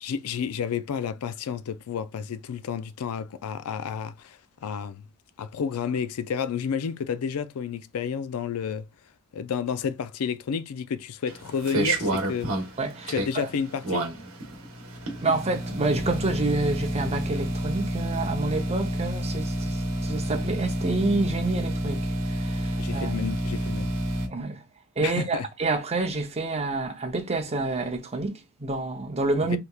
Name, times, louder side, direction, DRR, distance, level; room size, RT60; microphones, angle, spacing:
voice 1, 0.0-5.0 5.4-8.9 9.3-12.5 13.1-14.1 22.8-23.9 25.0-25.5 29.5-29.6, left 7 dB, 75° left, 0.4 m, -31 dB
sound 1, 11.3-24.3, right 1 dB, 65° right, 1.0 m, -29 dB
voice 2, 12.8-13.5 15.2-22.1 22.4-23.1 24.3-24.6 25.0-29.6, right 3 dB, 30° right, 0.6 m, -28 dB
3.4 x 2.8 x 2.3 m
head